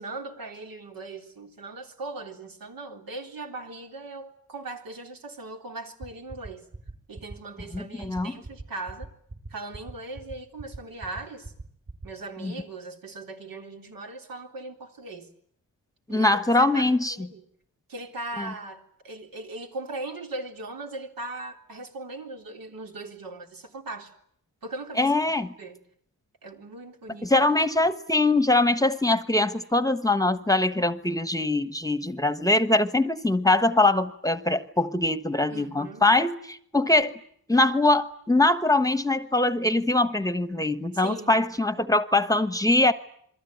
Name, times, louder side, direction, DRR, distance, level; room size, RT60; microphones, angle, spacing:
voice 1, 0.0-6.7 7.1-9.1 9.5-11.5 12.0-15.3 16.1-17.4 17.9-24.1 24.6-25.1 25.6-25.8 26.4-27.5 35.5-36.0 40.9-41.5, right 2 dB, 75° right, 3.8 m, -39 dB
sound 1, 6.0-12.1, right 2 dB, 40° right, 4.9 m, -39 dB
voice 2, 7.7-8.3 12.4-12.5 16.1-17.1 25.0-25.5 27.2-37.1 37.5-42.9, left 2 dB, 10° left, 1.1 m, -22 dB
28.0 x 22.5 x 9.3 m
wide cardioid pair, 125°, 35 cm